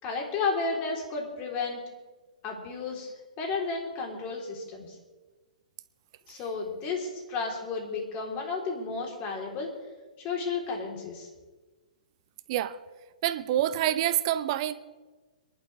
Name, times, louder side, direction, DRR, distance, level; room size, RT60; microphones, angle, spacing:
voice 1, 0.0-1.8 2.4-3.1 3.4-4.9 6.3-9.7 10.2-11.3, left 4 dB, 35° left, 3.7 m, -32 dB
voice 2, 13.2-14.7, right 12 dB, 45° right, 0.8 m, -27 dB
26.5 x 11.5 x 3.4 m
hypercardioid pair, 125°, 4 cm